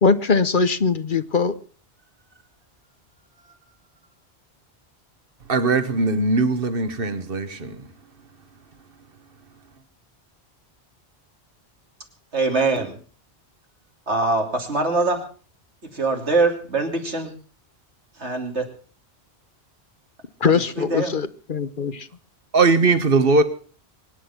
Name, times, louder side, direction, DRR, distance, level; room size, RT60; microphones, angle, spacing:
voice 1, 0.0-1.6 20.4-22.1, left 5 dB, 50° left, 13 dB, 1.1 m, -21 dB
voice 2, 5.5-7.9 22.5-23.4, right 3 dB, 55° right, 11 dB, 1.7 m, -20 dB
voice 3, 12.3-13.0 14.1-15.3 15.8-17.3 18.2-18.7 20.5-21.1, right 3 dB, 85° right, 4 dB, 3.3 m, -23 dB
24.0 x 10.0 x 5.8 m, 0.40 s
omnidirectional pair, 1.1 m